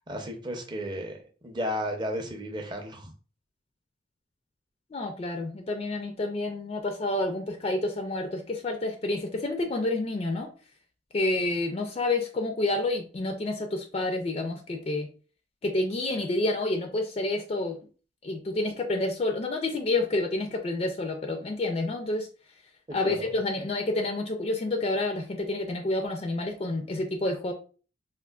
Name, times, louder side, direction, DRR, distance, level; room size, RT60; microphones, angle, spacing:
voice 1, 0.1-1.2 1.4-3.1 23.0-23.3, equal, 25° right, 2 dB, 0.5 m, -33 dB
voice 2, 4.9-10.5 11.1-15.1 15.6-17.8 18.2-22.3 22.9-27.5, left 2 dB, 35° left, 5 dB, 0.4 m, -29 dB
3.5 x 2.4 x 2.3 m, 0.37 s
head